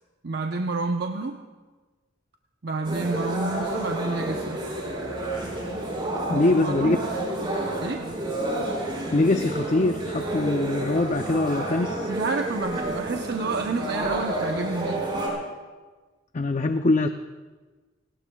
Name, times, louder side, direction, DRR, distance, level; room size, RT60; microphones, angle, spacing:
voice 1, 0.2-1.4 2.6-4.6 6.3-7.0 7.8-8.1 12.1-15.1, right 3 dB, 60° right, 3 dB, 0.8 m, -29 dB
sound 1, 2.8-15.3, right 1 dB, 25° right, 5.4 m, -30 dB
voice 2, 6.3-7.0 9.1-12.1 16.3-17.1, left 2 dB, 40° left, 7 dB, 0.5 m, -23 dB
29.0 x 18.5 x 2.3 m, 1.3 s
head